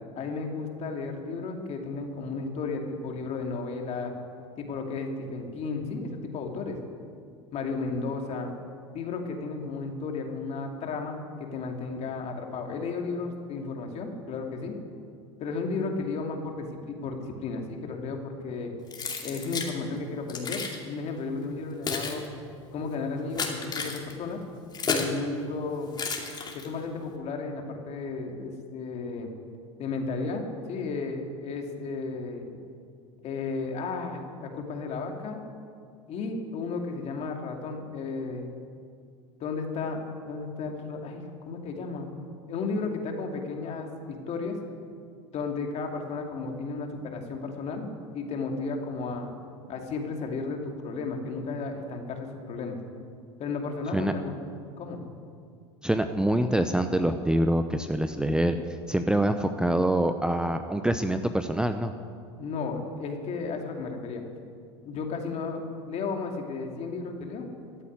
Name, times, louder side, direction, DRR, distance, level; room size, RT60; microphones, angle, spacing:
voice 1, 0.1-4.1 4.6-6.8 7.5-8.5 8.9-14.7 15.4-18.7 19.2-22.2 22.7-24.4 24.9-25.9 26.5-29.3 29.8-32.5 33.2-35.4 36.1-38.5 39.4-42.1 42.5-44.6 45.3-49.3 49.7-52.8 53.4-54.3 54.8-55.0 62.4-64.2 64.8-67.5, left 4 dB, 45° left, 2 dB, 2.5 m, -33 dB
Keys jangling, 18.9-19.7 20.3-20.8 21.5-25.2 25.9-26.9, left 4 dB, 30° left, 2.7 m, -32 dB
voice 2, 55.8-58.6 58.9-61.9, right 1 dB, 5° right, 8 dB, 0.7 m, -25 dB
14.5 x 8.3 x 9.5 m, 2.3 s
hypercardioid pair, 90°, 15 cm